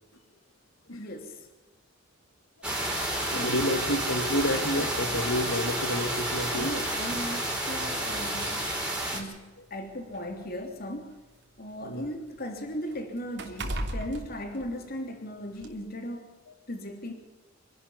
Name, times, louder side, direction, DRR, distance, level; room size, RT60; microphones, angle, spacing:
voice 1, 1.0-1.5 3.2-3.7 6.5-11.2 11.6-16.3 16.7-17.1, equal, 50° left, 4 dB, 3.2 m, -37 dB
sound 1, 2.6-9.2, right 1 dB, 5° right, 4.9 m, -30 dB
voice 2, 3.3-6.7 8.0-8.3 11.8-12.0, left 1 dB, 85° left, 7 dB, 2.4 m, -30 dB
sound 2, 9.4-11.4 11.8-15.2 15.6-15.7, right 1 dB, 60° right, 3.1 m, -38 dB
26.5 x 12.0 x 9.7 m, 1.1 s
head